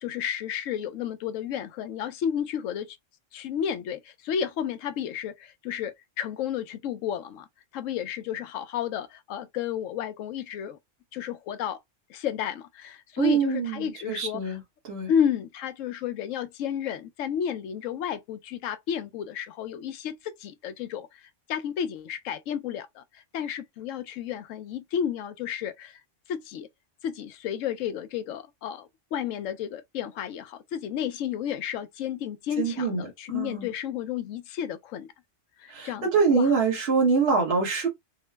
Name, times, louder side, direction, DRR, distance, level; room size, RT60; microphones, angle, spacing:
voice 1, 0.0-3.0 3.3-7.5 7.7-10.8 11.1-11.8 12.1-14.6 15.1-26.0 26.3-26.7 27.0-35.1 35.6-36.5, left 9 dB, 85° left, 1.0 m, -32 dB
voice 2, 13.2-14.6 14.9-15.1 32.6-33.0 33.3-33.7 35.7-37.9, right 5 dB, 55° right, 1.3 m, -24 dB
3.7 x 2.0 x 3.2 m
omnidirectional pair, 1.3 m